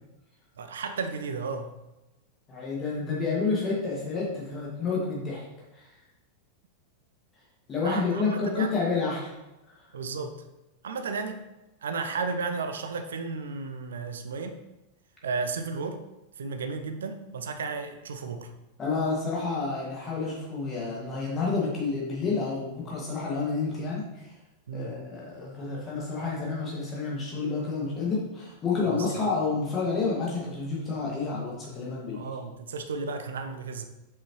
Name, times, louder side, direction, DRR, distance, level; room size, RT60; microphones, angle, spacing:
voice 1, 0.6-1.7 7.8-8.7 9.9-10.4 10.8-11.4 11.8-14.6 15.2-16.0 16.4-18.5 24.7-25.0 28.8-29.3 32.1-33.9, right 4 dB, 65° right, 9 dB, 0.6 m, -33 dB
voice 2, 2.5-5.4 5.7-5.9 7.7-9.3 9.8-9.9 18.8-24.3 24.7-32.3, left 4 dB, 25° left, -4 dB, 1.9 m, -29 dB
7.0 x 5.6 x 3.1 m, 0.98 s
figure-of-eight pair, 90°, 0 cm